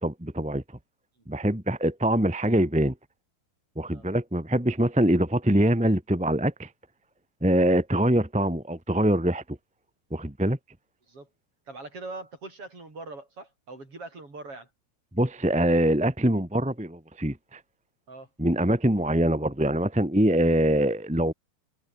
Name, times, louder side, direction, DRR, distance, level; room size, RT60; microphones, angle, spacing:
voice 1, 0.0-0.6 1.3-2.9 3.7-6.7 7.4-9.4 10.1-10.6 15.1-17.6 18.4-21.3, right 1 dB, 5° right, 1.0 m, -24 dB
voice 2, 11.7-14.7 18.1-18.3, right 3 dB, 35° right, 8.0 m, -42 dB
omnidirectional pair, 4.3 m